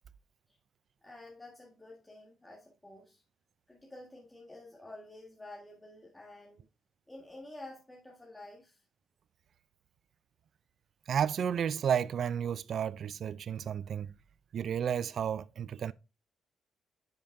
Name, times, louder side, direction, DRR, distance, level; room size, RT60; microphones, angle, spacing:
voice 1, 1.0-3.2 3.7-6.7 7.1-8.8, left 2 dB, 10° left, 1.6 m, -50 dB
voice 2, 11.1-14.1 14.5-15.9, right 8 dB, 60° right, 0.3 m, -32 dB
10.5 x 5.2 x 2.6 m
cardioid pair, 90°, 0 cm